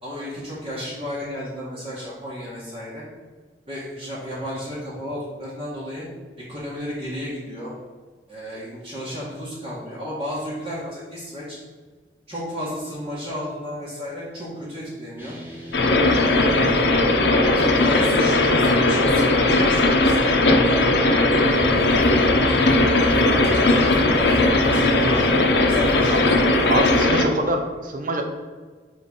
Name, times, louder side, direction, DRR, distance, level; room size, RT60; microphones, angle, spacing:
voice 1, 0.0-3.0 3.7-6.1 6.5-7.7 8.3-11.6 12.3-15.4 16.1-16.9 17.5-22.7 23.0-26.7, equal, 35° right, -10 dB, 1.7 m, -33 dB
sound 1, 15.2-22.8, right 1 dB, 10° right, 1.8 m, -38 dB
sound 2, 15.7-27.3, left 2 dB, 70° left, 0.8 m, -18 dB
sound 3, 21.4-27.0, equal, 70° right, 1.6 m, -33 dB
voice 2, 26.7-28.2, right 1 dB, 50° right, 5 dB, 0.8 m, -24 dB
5.0 x 4.1 x 5.4 m, 1.4 s
head